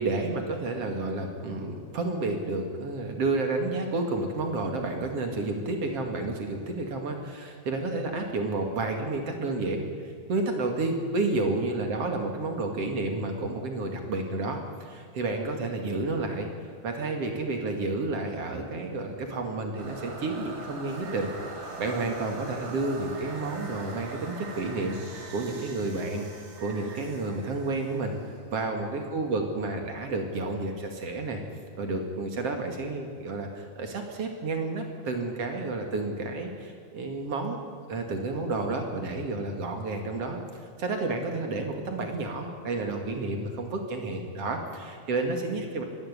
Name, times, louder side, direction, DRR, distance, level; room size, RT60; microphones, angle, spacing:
voice 1, 0.0-16.5 16.8-28.1 28.5-31.4 31.8-37.6 37.9-45.8, right 2 dB, 45° right, 3 dB, 2.8 m, -31 dB
sound 1, 19.8-28.8, right 2 dB, 80° right, 5.2 m, -42 dB
24.0 x 13.0 x 9.9 m, 2.1 s
omnidirectional pair, 4.4 m